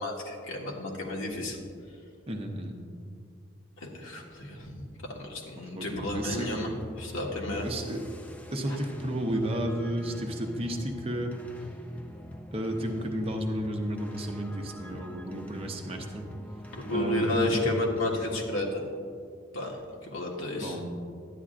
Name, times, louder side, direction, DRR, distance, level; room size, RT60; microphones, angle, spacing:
voice 1, 0.0-1.6 3.8-4.9 5.2-6.7 7.0-7.6 8.7-8.8 16.7-18.8 19.5-19.8 20.1-20.8, left 1 dB, 85° left, -1 dB, 1.5 m, -31 dB
voice 2, 2.3-2.7 5.6-6.7 7.5-8.0 8.5-11.4 12.5-16.3 16.9-17.8 20.6-20.8, right 1 dB, 30° right, 2 dB, 0.8 m, -32 dB
sound 1, 6.1-18.7, equal, 5° left, 0.4 m, -44 dB
11.5 x 9.9 x 2.5 m, 2.2 s
head